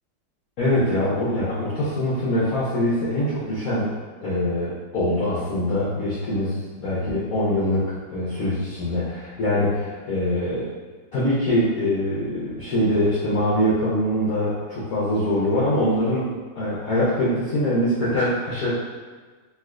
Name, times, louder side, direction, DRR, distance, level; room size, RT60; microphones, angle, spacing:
voice 1, 0.6-3.9 4.2-10.7 11.1-16.3 16.6-18.8, left 1 dB, 65° left, -9 dB, 0.9 m, -23 dB
3.2 x 2.8 x 2.3 m, 1.4 s
omnidirectional pair, 1.9 m